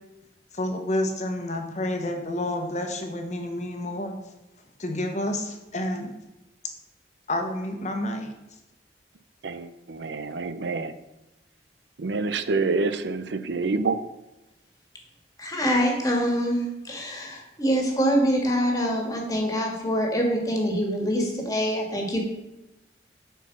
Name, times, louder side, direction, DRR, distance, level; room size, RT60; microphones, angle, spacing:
voice 1, 0.5-4.1 4.8-6.1 7.3-8.3, left 1 dB, 40° left, 4 dB, 1.1 m, -29 dB
voice 2, 9.4-10.9 12.0-14.0, right 3 dB, 80° right, 12 dB, 0.6 m, -27 dB
voice 3, 15.4-22.2, equal, 20° left, 0 dB, 1.7 m, -25 dB
8.0 x 4.6 x 5.9 m, 0.96 s
head